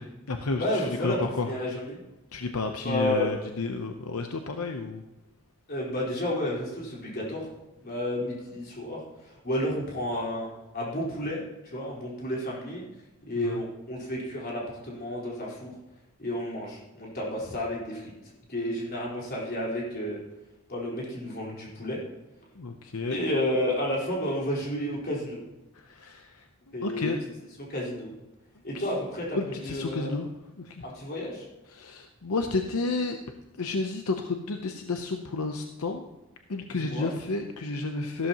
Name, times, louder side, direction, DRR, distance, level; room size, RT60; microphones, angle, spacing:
voice 1, 0.0-1.7 2.3-5.0 13.4-13.6 22.6-23.2 25.7-26.5 26.8-27.2 28.7-28.9 29.3-30.3 30.6-30.8 31.7-33.2 33.6-36.0 36.5-38.3, left 3 dB, 80° left, 5 dB, 0.8 m, -31 dB
voice 2, 0.6-1.2 1.5-2.0 2.8-3.3 5.7-7.5 7.8-10.5 10.7-11.4 11.7-12.8 13.3-15.7 16.2-18.1 18.5-20.2 20.7-22.0 23.1-25.4 26.7-27.1 27.6-28.1 28.6-30.1 30.8-31.4 36.8-37.1, left 1 dB, 45° left, -4 dB, 4.2 m, -31 dB
14.0 x 13.0 x 3.0 m, 1.0 s
head